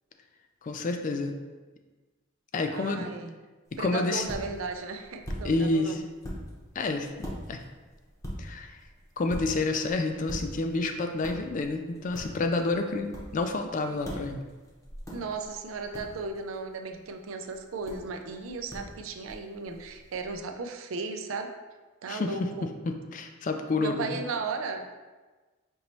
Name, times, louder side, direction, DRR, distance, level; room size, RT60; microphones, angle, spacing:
voice 1, 0.6-1.4 2.5-3.1 3.8-4.2 5.4-6.0 6.8-7.1 7.5-7.6 8.4-8.7 9.2-14.4 22.1-22.3 23.1-24.2, left 3 dB, 40° left, 5 dB, 0.3 m, -29 dB
voice 2, 2.7-3.4 3.8-6.0 15.1-21.5 22.0-22.7 23.8-24.9, right 4 dB, 85° right, 5 dB, 0.4 m, -35 dB
sound 1, 3.6-20.4, equal, 15° left, 0.8 m, -43 dB
5.3 x 2.9 x 2.9 m, 1.3 s
head